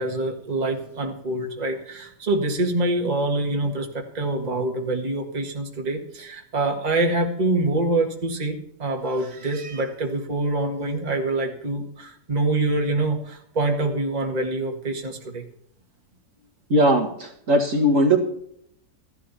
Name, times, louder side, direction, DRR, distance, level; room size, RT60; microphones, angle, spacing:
voice 1, 0.0-15.4, right 2 dB, 25° right, 1 dB, 1.9 m, -25 dB
voice 2, 16.7-18.2, right 1 dB, 50° right, 1 dB, 2.1 m, -19 dB
15.0 x 12.0 x 4.3 m, 0.70 s
omnidirectional pair, 1.8 m